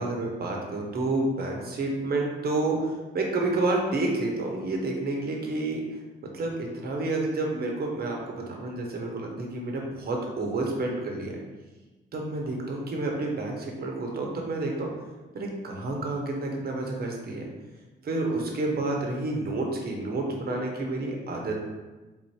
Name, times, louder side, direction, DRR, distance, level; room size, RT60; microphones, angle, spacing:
voice 1, 0.0-2.8 3.1-5.8 6.3-11.4 12.1-14.9 15.3-17.5 18.0-21.5, right 2 dB, 50° right, 0 dB, 1.1 m, -29 dB
3.8 x 2.7 x 4.7 m, 1.2 s
cardioid pair, 90°, 20 cm